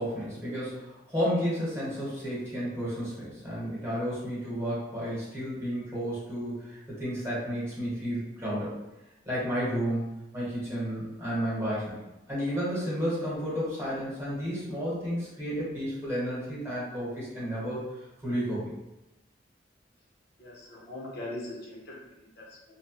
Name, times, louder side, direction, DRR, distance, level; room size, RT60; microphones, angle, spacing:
voice 1, 0.0-8.8 9.2-10.1 10.3-12.0 12.3-18.7, equal, 15° right, -9 dB, 1.1 m, -32 dB
voice 2, 20.4-22.7, left 1 dB, 60° left, -3 dB, 0.8 m, -41 dB
2.8 x 2.2 x 3.0 m, 0.99 s
head